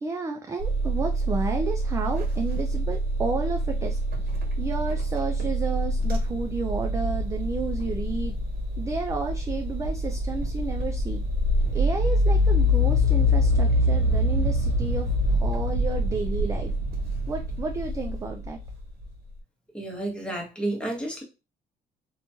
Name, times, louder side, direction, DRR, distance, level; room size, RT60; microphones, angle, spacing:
voice 1, 0.0-4.0 4.6-8.4 8.8-11.2 11.7-15.1 15.4-16.7 17.3-18.6, right 3 dB, 20° right, 4 dB, 0.3 m, -31 dB
sound 1, 0.6-19.1, left 1 dB, 65° right, 0.9 m, -25 dB
voice 2, 19.7-21.2, right 1 dB, 5° left, -1 dB, 0.9 m, -31 dB
2.9 x 2.3 x 2.7 m, 0.28 s
cardioid pair, 110°, 17 cm